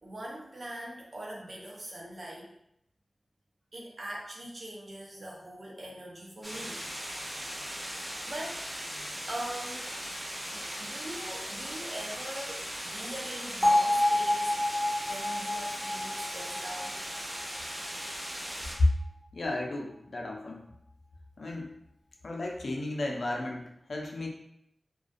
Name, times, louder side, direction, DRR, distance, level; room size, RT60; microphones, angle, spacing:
voice 1, 0.0-2.5 3.7-7.4 7.9-10.0 10.5-17.0, right 1 dB, 60° right, -3 dB, 0.6 m, -42 dB
sound 1, 6.4-18.8, equal, 20° right, 0.7 m, -38 dB
Bell, 13.6-17.7, left 1 dB, 10° left, 1.2 m, -28 dB
voice 2, 19.3-20.7 21.4-21.8 22.2-24.3, left 2 dB, 70° left, 0 dB, 0.4 m, -31 dB
2.4 x 2.2 x 2.5 m, 0.77 s
wide cardioid pair, 60°, 0 cm